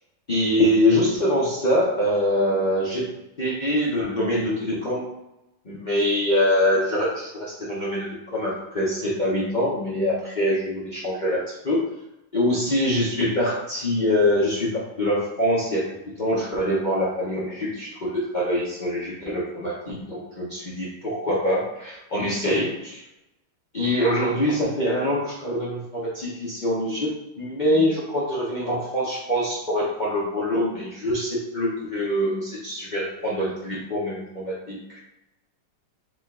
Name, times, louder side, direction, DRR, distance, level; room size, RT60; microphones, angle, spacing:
voice 1, 0.3-3.1 3.4-5.1 5.6-8.1 8.3-11.8 12.3-23.0 23.7-27.1 27.4-35.0, left 1 dB, 65° left, -8 dB, 0.4 m, -24 dB
5.0 x 2.5 x 3.6 m, 0.90 s
omnidirectional pair, 2.2 m